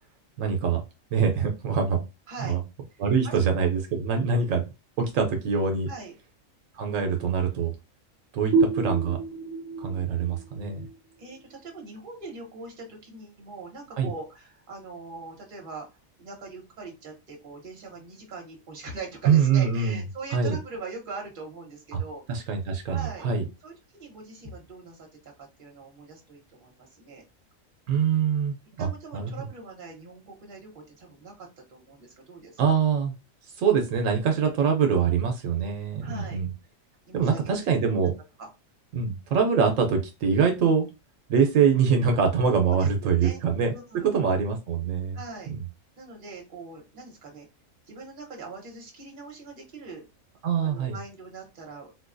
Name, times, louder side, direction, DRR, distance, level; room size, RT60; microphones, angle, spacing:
voice 1, 0.4-0.8 1.1-2.0 2.4-2.6 3.0-4.6 5.0-5.9 6.8-7.7 8.3-9.2 9.8-10.9 14.0-14.1 19.3-20.0 20.3-20.6 22.3-23.4 27.9-28.9 29.1-29.3 32.6-33.1 33.6-36.5 37.1-38.1 38.9-40.9 41.3-43.7 44.1-45.2 45.5-45.6 50.4-51.0, right 6 dB, 80° right, 4 dB, 1.0 m, -24 dB
voice 2, 2.9-3.4 5.9-6.1 11.2-15.9 16.2-22.4 22.9-23.3 23.6-27.2 28.8-32.8 36.0-36.4 37.1-37.9 38.4-38.5 42.7-43.4 43.7-44.2 45.1-45.5 46.0-47.5 47.9-50.0 50.6-51.9, right 4 dB, 45° right, 1 dB, 1.0 m, -42 dB
sound 1, 8.5-11.9, right 4 dB, 20° right, 0.5 m, -28 dB
4.1 x 2.2 x 2.4 m, 0.27 s
omnidirectional pair, 1.4 m